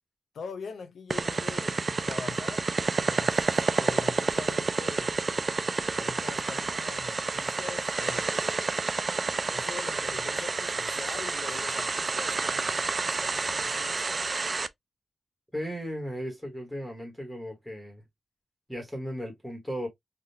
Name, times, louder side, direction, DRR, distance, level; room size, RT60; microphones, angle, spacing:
voice 1, 0.3-5.2 5.9-8.8 9.5-14.3, left 5 dB, 90° left, 0.7 m, -43 dB
sound 1, 1.1-14.7, right 4 dB, 40° right, 0.3 m, -29 dB
voice 2, 15.5-18.0 18.7-19.9, equal, ahead, 1.2 m, -36 dB
3.5 x 2.3 x 2.7 m
wide cardioid pair, 115°, 0 cm